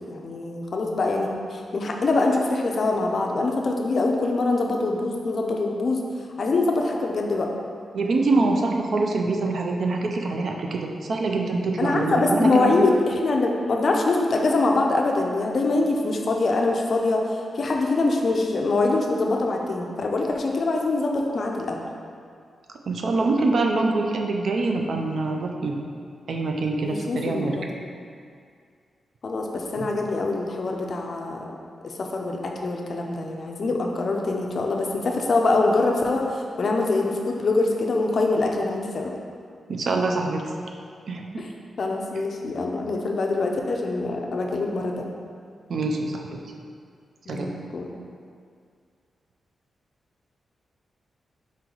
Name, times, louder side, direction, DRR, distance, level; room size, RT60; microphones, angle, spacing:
voice 1, 0.1-6.0 6.4-7.5 11.8-21.8 26.8-27.7 29.2-31.4 31.8-39.1 41.4-41.5 41.8-45.1 47.3-47.9, left 3 dB, 45° left, 1 dB, 0.4 m, -24 dB
voice 2, 7.9-12.8 22.9-25.8 26.3-27.6 29.8-29.9 39.7-40.4 41.1-41.4 45.7-46.4 47.3-47.5, right 3 dB, 60° right, 2 dB, 0.4 m, -24 dB
4.3 x 3.0 x 3.8 m, 2.2 s
wide cardioid pair, 140°, 0 cm